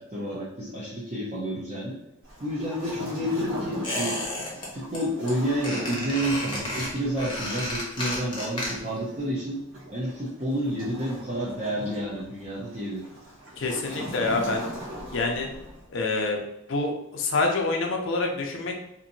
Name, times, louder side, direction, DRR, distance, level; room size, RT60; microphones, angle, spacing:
voice 1, 0.0-2.0 2.4-4.2 4.7-9.6 9.9-13.0, equal, 30° right, -8 dB, 0.5 m, -30 dB
Waves surf, 2.2-15.9, equal, 65° right, 1.2 m, -40 dB
Squeak, 3.8-4.7 4.9-5.3 5.6-9.0 9.3-9.4, left 1 dB, 20° left, 0.7 m, -32 dB
voice 2, 13.6-14.7 15.1-15.5 15.9-16.4 16.7-18.8, left 3 dB, 60° left, 2 dB, 0.5 m, -26 dB
2.9 x 2.6 x 2.6 m, 0.87 s
head